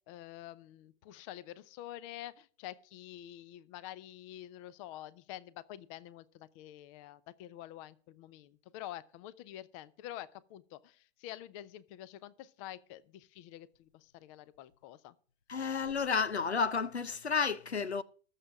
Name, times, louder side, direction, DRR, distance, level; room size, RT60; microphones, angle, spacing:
voice 1, 0.1-15.1, left 13 dB, 30° left, 0.7 m, -48 dB
voice 2, 15.5-18.0, left 5 dB, 85° left, 0.8 m, -31 dB
19.5 x 7.5 x 3.6 m
figure-of-eight pair, 110°, 32 cm